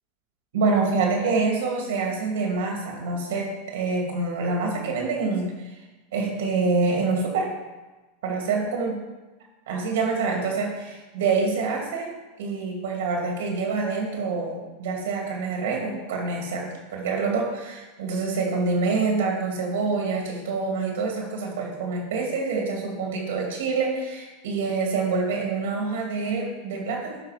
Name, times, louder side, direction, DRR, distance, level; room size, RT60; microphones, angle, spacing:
voice 1, 0.5-5.5 6.1-7.5 8.2-9.0 9.7-12.1 12.4-27.2, right 4 dB, 80° right, 0 dB, 2.4 m, -26 dB
11.5 x 3.9 x 5.0 m, 1.2 s
hypercardioid pair, 120°, 0 cm